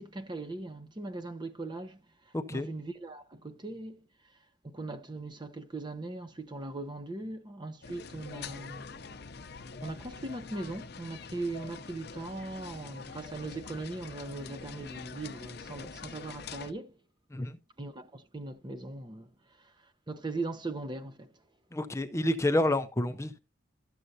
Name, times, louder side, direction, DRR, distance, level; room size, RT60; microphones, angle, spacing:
voice 1, 0.0-2.0 2.5-4.0 4.6-9.1 9.8-17.0 17.8-19.3 19.6-19.7 20.1-21.3, right 2 dB, 25° right, 0.7 m, -39 dB
voice 2, 2.3-2.7 17.3-17.6 21.7-23.4, left 1 dB, 15° left, 0.5 m, -29 dB
sound 1, 7.8-16.7, left 5 dB, 55° left, 0.7 m, -45 dB
12.5 x 7.7 x 2.7 m
head